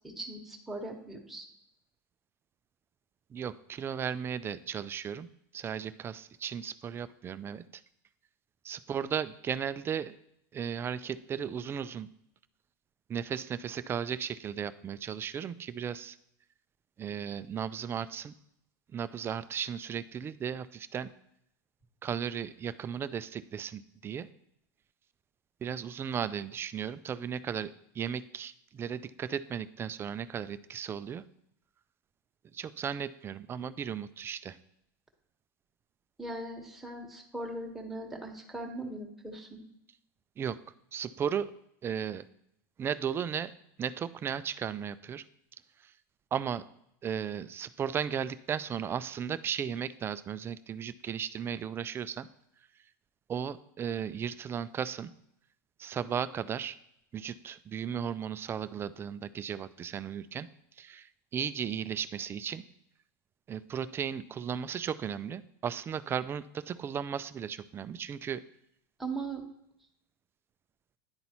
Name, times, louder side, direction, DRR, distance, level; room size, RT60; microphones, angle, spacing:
voice 1, 0.2-1.5 36.2-39.6 69.0-69.4, right 2 dB, ahead, 0 dB, 1.2 m, -39 dB
voice 2, 3.3-5.3 5.5-7.8 8.6-10.2 10.5-12.1 13.1-16.2 17.0-18.3 18.9-21.1 22.0-24.3 25.6-31.2 32.5-34.6 40.4-40.6 40.9-41.5 41.8-42.2 42.8-43.5 43.8-45.2 45.8-45.9 46.3-46.6 47.0-52.3 53.3-55.1 55.8-56.8 57.1-60.5 60.8-62.6 63.5-68.4, right 8 dB, 25° right, 14 dB, 0.3 m, -35 dB
10.5 x 4.0 x 2.9 m, 0.78 s
supercardioid pair, 115°, 10 cm